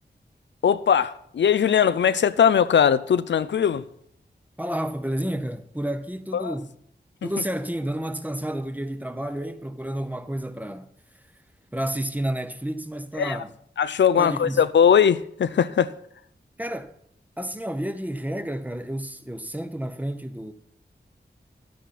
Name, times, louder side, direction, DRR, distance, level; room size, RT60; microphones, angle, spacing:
voice 1, 0.6-3.8 6.3-6.5 13.2-13.4 13.8-15.9, left 8 dB, 80° left, 0.5 m, -20 dB
voice 2, 4.6-6.7 7.2-10.9 11.7-13.5 14.2-14.6 16.6-16.9 17.4-20.5, right 1 dB, 10° right, 0.9 m, -30 dB
12.0 x 9.3 x 4.2 m
cardioid pair, 45°, 18 cm